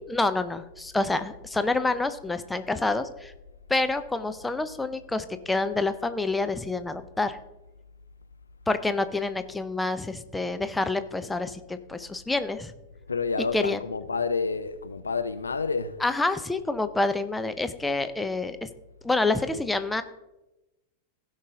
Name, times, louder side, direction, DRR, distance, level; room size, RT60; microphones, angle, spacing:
voice 1, 0.1-3.3 3.7-7.4 8.7-12.7 13.5-13.8 16.0-18.7 19.0-20.0, left 3 dB, 10° left, 0.6 m, -27 dB
voice 2, 13.1-16.0, left 4 dB, 75° left, 0.5 m, -29 dB
16.0 x 5.7 x 3.7 m
figure-of-eight pair, 90°, 0 cm